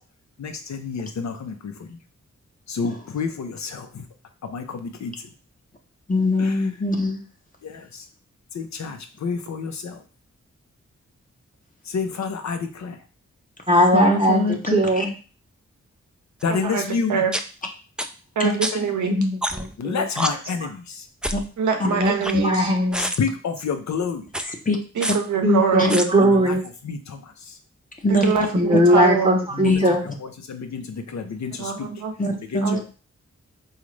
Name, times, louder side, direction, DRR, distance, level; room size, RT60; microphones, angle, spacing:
voice 1, 0.4-2.0 2.7-4.0 4.4-5.1 6.4-6.6 7.6-8.1 8.5-10.0 11.9-13.0 16.4-17.2 18.7-18.8 19.8-21.0 23.0-24.3 26.2-26.6 26.8-27.6 29.6-29.8 30.5-31.9 32.5-32.8, left 5 dB, 70° left, 6 dB, 0.7 m, -29 dB
voice 2, 6.1-7.2 13.9-14.5 15.0-15.1 18.4-18.5 21.3-21.4 24.7-24.8 25.8-25.9 28.0-28.3 29.6-29.9 32.2-32.8, left 1 dB, 30° left, 2 dB, 0.7 m, -21 dB
voice 3, 13.7-15.1 16.6-16.7 18.8-20.1 20.6-20.7 21.8-23.1 25.4-26.6 28.5-30.0, equal, 20° right, 0 dB, 0.8 m, -20 dB
sound 1, 16.4-16.5 17.3-17.4 18.0-18.1 18.6-18.7 19.4-19.7 20.2-20.3 21.2-21.5 22.0-22.7 22.9-23.2 24.3-24.4 25.0-25.2 25.9-26.0, right 1 dB, 5° right, 0.3 m, -26 dB
voice 4, 16.5-16.8 17.1-17.3 18.4-19.2 21.6-22.7 24.9-26.0 28.1-29.4 31.6-32.1 32.6-32.8, right 6 dB, 85° right, 4 dB, 0.7 m, -24 dB
3.9 x 2.4 x 3.1 m, 0.36 s
cardioid pair, 50°, 29 cm